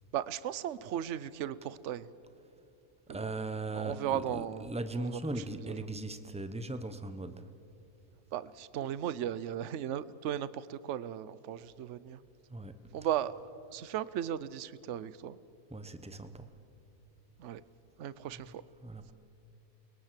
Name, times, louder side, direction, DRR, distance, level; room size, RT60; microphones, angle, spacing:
voice 1, 0.1-2.1 3.1-3.2 3.7-4.7 4.9-5.2 5.6-5.7 8.3-12.2 12.9-13.3 13.7-15.4 17.4-17.6 18.0-18.6, right 10 dB, 55° right, 17 dB, 0.9 m, -36 dB
voice 2, 3.1-7.5 12.5-12.8 15.7-16.5 18.3-18.4 18.8-19.1, right 2 dB, 5° right, 10 dB, 0.7 m, -39 dB
29.0 x 21.5 x 7.6 m, 2.6 s
omnidirectional pair, 1.8 m